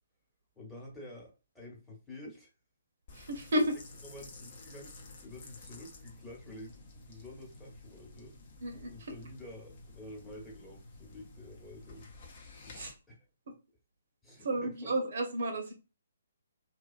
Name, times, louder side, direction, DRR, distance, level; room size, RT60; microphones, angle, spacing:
voice 1, 0.5-2.5 4.0-8.3 8.9-12.1 12.6-13.3 14.2-14.9, left 1 dB, 5° left, -5 dB, 1.0 m, -49 dB
sound 1, 3.1-12.9, left 2 dB, 45° left, 0.7 m, -52 dB
voice 2, 3.1-3.8 8.6-9.1 12.7-12.9 14.4-15.7, right 1 dB, 60° right, 4 dB, 0.7 m, -32 dB
2.5 x 2.2 x 2.4 m, 0.31 s
figure-of-eight pair, 135°, 0 cm